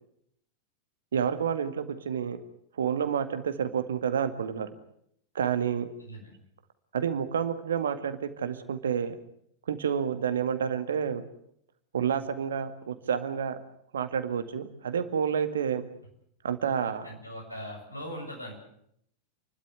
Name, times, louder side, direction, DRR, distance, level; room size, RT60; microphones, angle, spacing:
voice 1, 1.1-2.4 2.8-4.7 5.3-5.9 6.9-9.2 9.7-11.2 11.9-13.6 13.9-15.8 16.4-17.1, right 7 dB, 65° right, 10 dB, 2.0 m, -29 dB
voice 2, 6.0-6.4 17.0-18.5, equal, 90° left, -1 dB, 7.7 m, -40 dB
29.0 x 12.5 x 9.6 m, 0.71 s
figure-of-eight pair, 90°, 0 cm